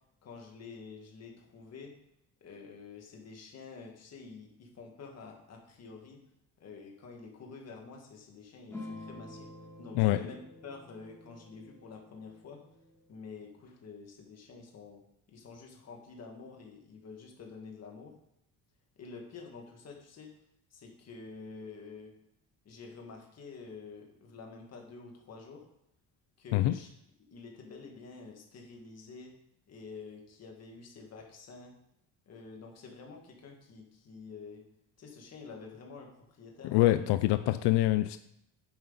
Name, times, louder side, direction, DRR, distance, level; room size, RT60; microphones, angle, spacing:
voice 1, 0.2-1.9 2.4-6.2 6.6-9.5 9.8-10.4 10.6-12.6 13.1-15.0 15.3-18.1 19.0-20.3 20.7-22.1 22.7-25.7 26.4-26.9 27.3-29.3 29.7-31.7 32.3-34.6 35.0-36.9, left 4 dB, 40° left, 1 dB, 1.9 m, -48 dB
sound 1, 8.7-13.6, left 2 dB, 5° left, 2.3 m, -49 dB
voice 2, 36.6-38.2, left 16 dB, 85° left, 11 dB, 0.5 m, -25 dB
9.6 x 7.9 x 4.0 m, 0.78 s
cardioid pair, 180°, 39 cm